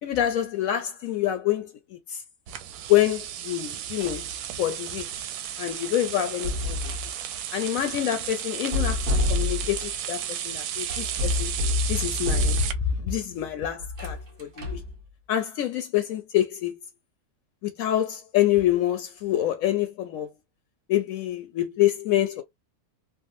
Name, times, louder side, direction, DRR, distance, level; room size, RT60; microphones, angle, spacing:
voice 1, 0.0-2.2 2.9-4.3 4.6-5.3 5.6-6.9 7.5-11.5 11.9-12.6 13.0-14.8 15.3-16.8 17.6-20.3 20.9-22.4, left 12 dB, 70° left, 0.9 m, -26 dB
sound 1, 2.5-12.7, right 10 dB, 90° right, 1.1 m, -33 dB
sound 2, 4.0-4.3 6.2-7.1 8.6-9.9 10.9-13.1 13.8-14.9, left 2 dB, 40° right, 1.1 m, -27 dB
3.5 x 2.0 x 2.6 m
omnidirectional pair, 1.6 m